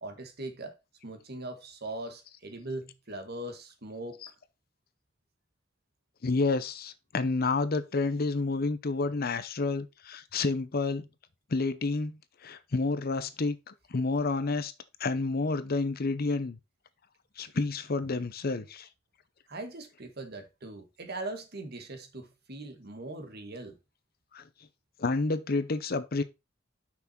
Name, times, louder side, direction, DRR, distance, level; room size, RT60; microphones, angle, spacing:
voice 1, 0.0-0.7 1.0-4.2 19.5-23.8, right 2 dB, 55° right, 1.7 m, -40 dB
voice 2, 6.2-11.1 11.5-14.7 15.0-16.6 17.4-18.9 24.3-24.4 25.0-26.2, left 3 dB, 50° left, 0.7 m, -30 dB
6.0 x 6.0 x 4.2 m
head